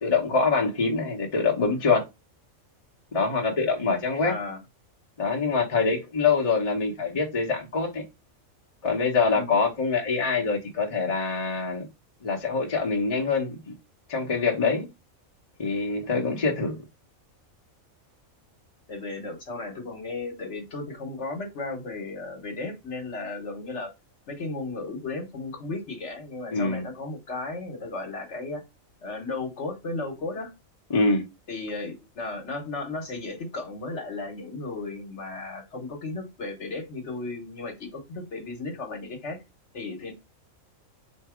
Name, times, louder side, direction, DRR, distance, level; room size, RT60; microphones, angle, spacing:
voice 1, 0.0-2.0 3.1-4.3 5.2-8.0 8.8-11.9 12.2-13.7 14.1-14.9 15.6-16.8 26.5-26.9 30.9-31.2, left 4 dB, 30° left, 0.9 m, -25 dB
voice 2, 4.2-4.6 9.3-9.6 16.2-16.5 18.9-23.9 24.3-28.6 29.0-30.5 31.5-39.4 39.7-40.1, left 3 dB, 55° left, 1.4 m, -35 dB
3.9 x 2.7 x 4.8 m
omnidirectional pair, 1.4 m